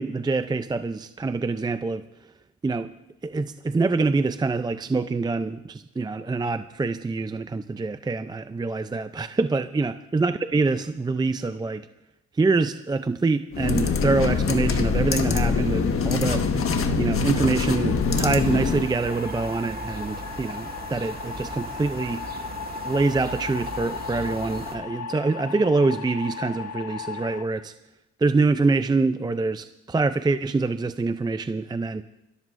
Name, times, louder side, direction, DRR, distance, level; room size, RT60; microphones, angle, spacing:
voice 1, 0.0-2.0 2.6-2.9 3.2-11.9 12.3-16.5 17.0-22.3 22.8-27.7 28.2-32.0, right 3 dB, 15° right, 10 dB, 0.4 m, -25 dB
sound 1, 13.5-18.9, left 5 dB, 45° left, 1.5 m, -24 dB
sound 2, 17.2-27.4, left 6 dB, 65° left, 1.1 m, -37 dB
sound 3, 18.1-24.8, right 3 dB, 30° right, 2.1 m, -38 dB
29.5 x 13.5 x 2.6 m, 0.92 s
cardioid pair, 90°, 30 cm